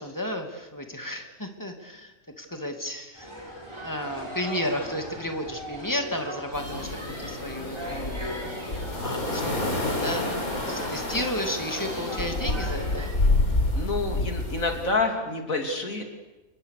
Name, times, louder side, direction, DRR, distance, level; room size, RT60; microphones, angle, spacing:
voice 1, 0.0-3.3 3.8-8.4 9.0-10.3 10.7-13.1, left 1 dB, 15° left, 4 dB, 2.7 m, -33 dB
sound 1, 3.2-13.1, equal, 20° right, 6.6 m, -39 dB
sound 2, 6.5-14.9, left 2 dB, 90° left, 4.5 m, -28 dB
voice 2, 13.7-16.0, left 3 dB, 70° left, 3 dB, 3.7 m, -28 dB
29.0 x 21.5 x 6.8 m, 1.1 s
omnidirectional pair, 1.5 m